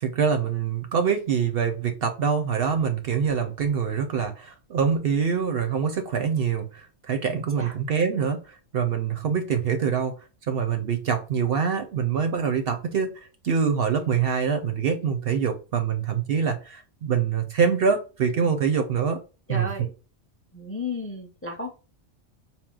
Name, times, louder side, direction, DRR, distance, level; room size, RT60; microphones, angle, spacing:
voice 1, 0.0-10.1 10.5-19.2 19.5-19.7, right 6 dB, 60° right, 0.7 m, -25 dB
voice 2, 19.5-19.9 20.5-21.7, left 2 dB, 15° left, 0.5 m, -33 dB
4.3 x 2.0 x 3.7 m
omnidirectional pair, 1.2 m